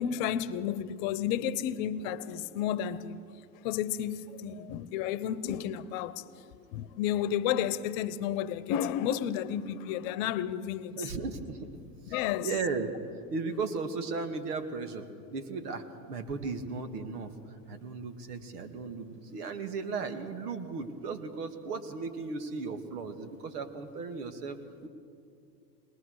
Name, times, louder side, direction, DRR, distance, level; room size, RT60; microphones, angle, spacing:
voice 1, 0.0-3.2 3.6-6.2 6.6-10.9 12.1-12.5, left 10 dB, 55° left, 1.0 m, -32 dB
voice 2, 10.9-11.7 12.1-12.9 13.3-17.3 17.7-24.9, right 4 dB, 75° right, 2.0 m, -36 dB
22.0 x 19.5 x 6.4 m
hypercardioid pair, 95°, 47 cm